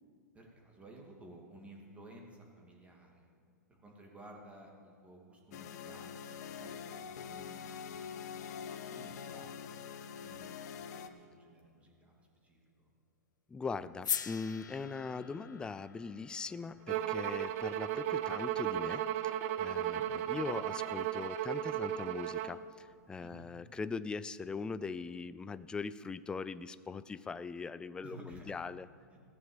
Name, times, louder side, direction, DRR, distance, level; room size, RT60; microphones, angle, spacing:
voice 1, 0.3-3.3 3.7-9.5 10.2-12.1 12.4-12.9 19.7-20.1 23.2-23.5 28.0-28.6 29.1-29.2, right 1 dB, 15° right, -1 dB, 2.5 m, -55 dB
sound 1, 5.5-11.1, left 7 dB, 65° left, 0.9 m, -45 dB
voice 2, 13.5-28.9, left 4 dB, 10° left, 15 dB, 0.3 m, -41 dB
sound 2, 14.0-18.2, left 8 dB, 90° left, 0.5 m, -42 dB
Bowed string instrument, 16.9-22.6, right 11 dB, 50° right, 0.6 m, -35 dB
15.0 x 6.8 x 8.0 m, 2.3 s
hypercardioid pair, 120°, 10 cm